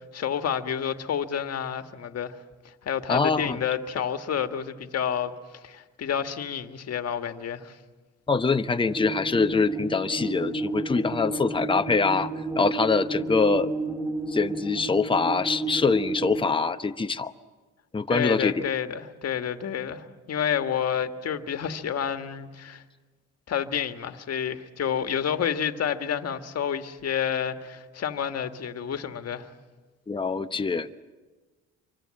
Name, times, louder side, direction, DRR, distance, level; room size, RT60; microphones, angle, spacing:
voice 1, 0.1-2.4 2.8-5.3 5.6-7.7 18.1-22.8 23.5-29.5, left 8 dB, 55° left, 1.6 m, -29 dB
voice 2, 3.1-3.6 8.3-12.3 12.6-13.7 14.3-17.3 17.9-18.6 30.1-30.9, left 4 dB, 15° left, 0.9 m, -24 dB
sound 1, 8.8-16.4, right 2 dB, 10° right, 5.8 m, -31 dB
26.5 x 24.0 x 7.7 m
cardioid pair, 90°, 30 cm